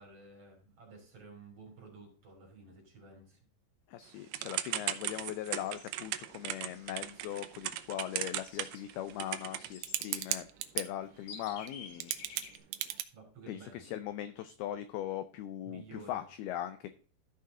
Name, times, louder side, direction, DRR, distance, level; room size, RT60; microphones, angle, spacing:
voice 1, 0.0-3.5 13.1-13.9 15.7-16.2, right 3 dB, 35° right, 0 dB, 3.8 m, -53 dB
voice 2, 3.9-10.5 10.8-12.1 13.5-16.9, left 12 dB, 80° left, 11 dB, 2.3 m, -40 dB
Typing / Telephone, 4.3-10.8 11.7-11.8 12.0-13.0, right 13 dB, 80° right, 2.6 m, -36 dB
sound 1, 5.0-12.6, left 5 dB, 65° left, 3.1 m, -54 dB
13.5 x 5.7 x 3.7 m, 0.42 s
omnidirectional pair, 5.1 m